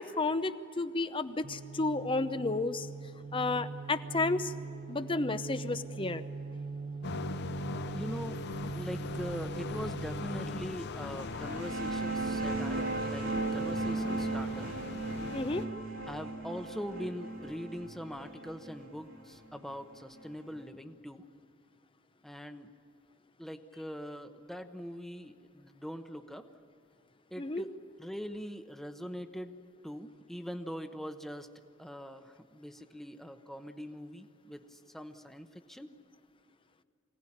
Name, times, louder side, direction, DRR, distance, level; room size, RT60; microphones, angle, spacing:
voice 1, 0.0-2.9 3.3-4.5 4.9-6.2 15.3-15.7 27.4-27.6, left 3 dB, 25° left, 11 dB, 0.8 m, -32 dB
sound 1, 1.4-10.8, right 4 dB, 40° right, 1.0 m, -41 dB
sound 2, 7.0-15.6, left 4 dB, 60° left, 0.7 m, -41 dB
voice 2, 7.9-8.4 8.7-13.3 13.5-14.7 16.1-21.3 22.2-22.7 23.4-26.5 27.3-27.7 28.0-29.6 29.8-31.5 31.8-35.9, equal, ahead, 7 dB, 1.0 m, -42 dB
sound 3, 11.2-20.5, right 2 dB, 85° right, 3.1 m, -36 dB
24.5 x 18.0 x 9.9 m, 2.6 s
head